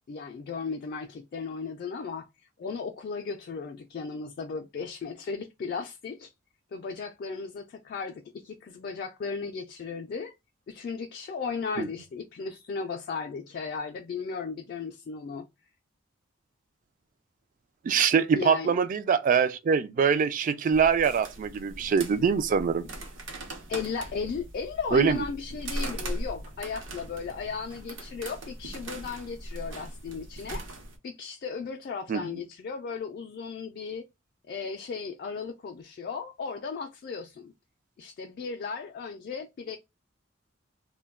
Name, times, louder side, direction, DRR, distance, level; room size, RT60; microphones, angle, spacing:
voice 1, 0.1-2.3 2.6-6.3 6.7-10.3 10.7-15.5 18.3-18.8 23.7-30.6 31.0-34.1 34.5-37.5 38.0-39.8, left 5 dB, 50° left, 0.3 m, -35 dB
voice 2, 17.8-22.8 24.9-25.2 32.1-32.2, right 6 dB, 45° right, 0.3 m, -24 dB
sound 1, 20.7-31.0, right 1 dB, 75° right, 0.8 m, -39 dB
2.2 x 2.2 x 3.4 m
head